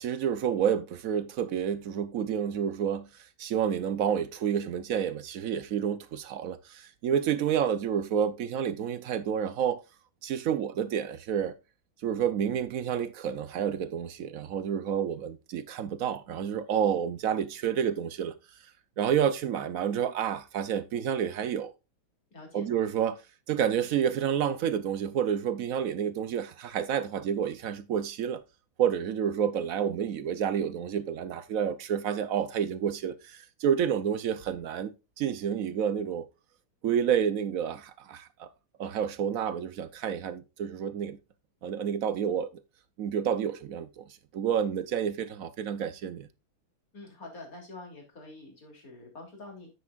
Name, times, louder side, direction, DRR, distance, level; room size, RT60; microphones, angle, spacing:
voice 1, 0.0-3.1 3.4-9.8 10.2-11.5 12.0-18.3 19.0-21.7 22.5-23.2 23.5-28.4 28.8-36.3 36.8-38.5 38.8-41.2 41.6-42.5 43.0-46.3, right 8 dB, 65° right, 0.8 m, -29 dB
voice 2, 22.3-22.8 46.9-49.7, left 2 dB, 45° left, 3.5 m, -46 dB
9.5 x 8.3 x 2.4 m
omnidirectional pair, 2.2 m